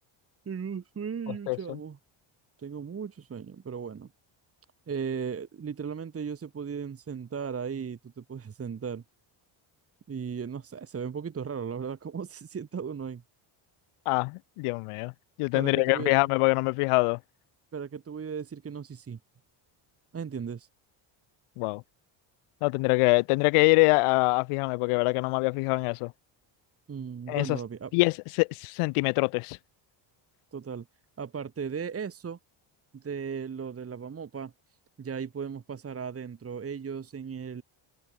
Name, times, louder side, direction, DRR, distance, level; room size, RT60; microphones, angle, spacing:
voice 1, 0.5-2.0 2.6-4.1 4.9-9.0 10.1-13.2 15.5-16.1 17.7-19.2 20.1-20.7 26.9-27.9 30.5-30.9 31.2-32.4 32.9-34.5 35.0-37.6, right 6 dB, 25° right, 1.9 m, -36 dB
voice 2, 1.5-1.8 14.1-15.1 15.4-17.2 21.6-21.8 22.6-26.1 27.3-27.6 27.9-29.6, left 26 dB, 90° left, 0.6 m, -24 dB
cardioid pair, 130°, 50 cm